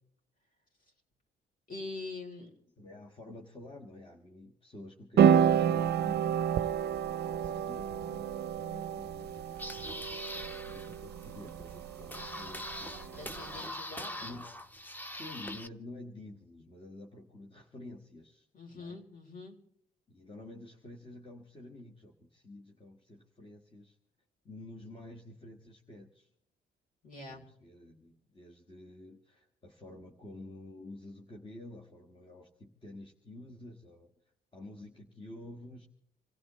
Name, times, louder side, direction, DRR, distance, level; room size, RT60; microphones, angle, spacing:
voice 1, 1.7-2.5 13.1-14.4 18.5-19.6 27.0-27.5, left 3 dB, 45° left, 2 dB, 3.4 m, -44 dB
voice 2, 2.8-7.1 7.3-10.0 10.3-13.7 14.2-14.5 15.1-18.5 18.7-19.0 20.1-24.0 24.4-26.3 27.3-34.1 34.5-35.9, left 1 dB, 25° left, 1 dB, 1.6 m, -50 dB
sound 1, 5.2-13.6, right 8 dB, 55° right, 0.5 m, -30 dB
sound 2, 9.2-15.7, left 1 dB, 10° left, 0.8 m, -43 dB
27.0 x 16.5 x 3.1 m, 0.67 s
cardioid pair, 90°, 20 cm